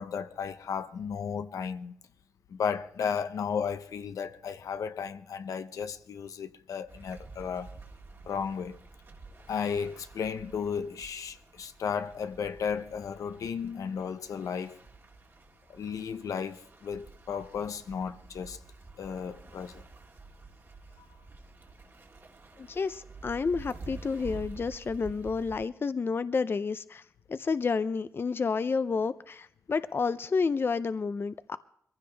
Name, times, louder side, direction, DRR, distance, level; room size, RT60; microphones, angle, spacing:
voice 1, 0.0-2.0 2.5-7.7 8.3-8.8 9.5-14.8 15.7-18.6 19.0-19.8, left 6 dB, 80° left, 0.7 m, -34 dB
sound 1, 6.9-25.7, right 3 dB, 45° right, 1.9 m, -49 dB
voice 2, 22.6-27.0 27.3-31.6, left 5 dB, 40° left, 0.5 m, -30 dB
22.0 x 15.5 x 3.4 m
cardioid pair, 75°, 6 cm